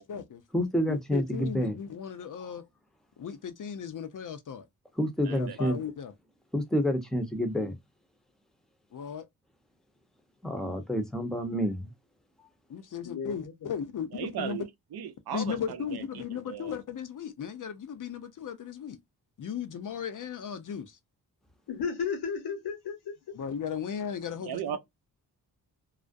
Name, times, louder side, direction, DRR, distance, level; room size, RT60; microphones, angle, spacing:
voice 1, 0.0-0.4 0.9-2.6 3.2-4.7 5.3-6.1 8.9-9.3 12.7-14.6 15.3-19.0 19.4-21.0 23.3-24.8, left 7 dB, 50° left, 0.6 m, -36 dB
voice 2, 0.5-1.7 5.0-5.8 6.5-7.7 10.4-11.9, equal, ahead, 0.7 m, -28 dB
voice 3, 5.2-5.7 14.1-14.7 14.9-16.7 24.4-24.8, right 9 dB, 65° right, 0.6 m, -37 dB
voice 4, 13.0-13.7 21.7-23.2, left 6 dB, 70° left, 1.0 m, -34 dB
2.4 x 2.1 x 2.5 m
cardioid pair, 60°, 41 cm